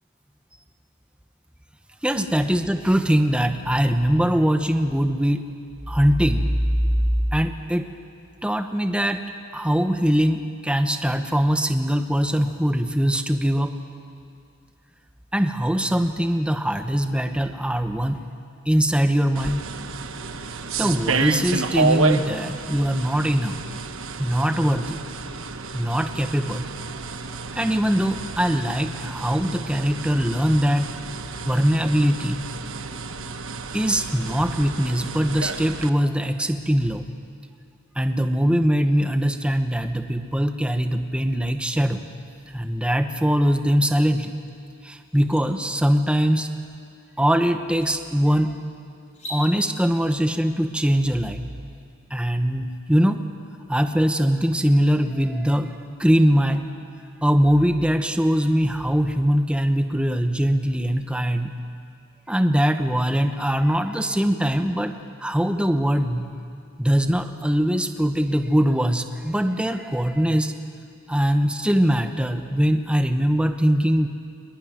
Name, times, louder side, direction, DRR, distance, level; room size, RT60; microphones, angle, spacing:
voice 1, 2.0-5.4 5.9-6.5 7.3-7.9 8.4-9.2 9.5-13.7 15.3-18.2 18.7-19.7 20.8-23.6 24.2-25.0 25.7-26.7 27.5-30.9 31.5-32.4 33.7-37.1 37.9-42.0 42.5-44.4 44.8-46.5 47.2-48.5 49.3-51.5 52.1-53.2 53.7-56.7 57.2-61.6 62.3-64.9 65.2-66.3 66.8-70.5 71.1-74.1, equal, 5° right, 7 dB, 0.9 m, -22 dB
sound 1, 19.4-35.9, right 4 dB, 85° right, 1.1 m, -30 dB
sound 2, 44.5-44.6 45.0-45.4 47.1-47.2 47.7-47.9 49.1-49.4, left 1 dB, 35° left, 4.9 m, -38 dB
22.0 x 22.0 x 9.6 m, 2.4 s
head